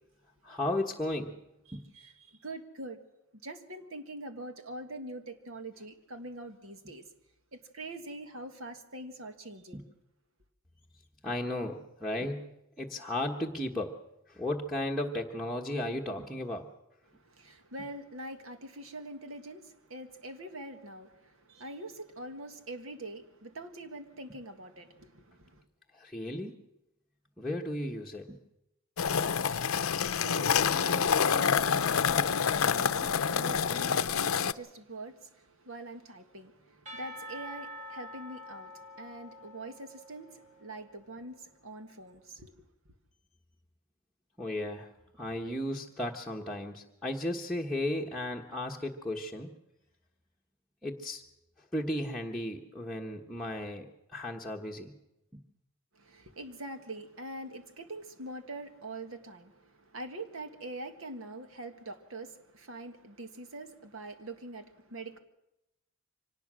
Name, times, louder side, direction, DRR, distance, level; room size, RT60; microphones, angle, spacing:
voice 1, 0.4-1.4 1.7-1.9 9.7-9.8 11.2-14.0 14.3-16.7 25.9-26.5 27.4-28.4 44.4-49.5 50.8-51.2 51.6-53.9 54.1-54.9, left 1 dB, ahead, 1.3 m, -35 dB
voice 2, 1.7-2.1 2.4-3.0 3.4-7.0 7.5-9.8 17.3-21.1 21.5-25.6 29.9-35.3 35.6-38.7 39.0-40.3 40.6-42.5 56.0-59.5 59.9-65.2, right 2 dB, 70° right, 1.7 m, -44 dB
sound 1, 29.0-34.5, left 7 dB, 85° left, 0.7 m, -27 dB
Percussion / Church bell, 36.9-40.8, left 1 dB, 40° right, 4.6 m, -46 dB
24.5 x 19.0 x 6.3 m
head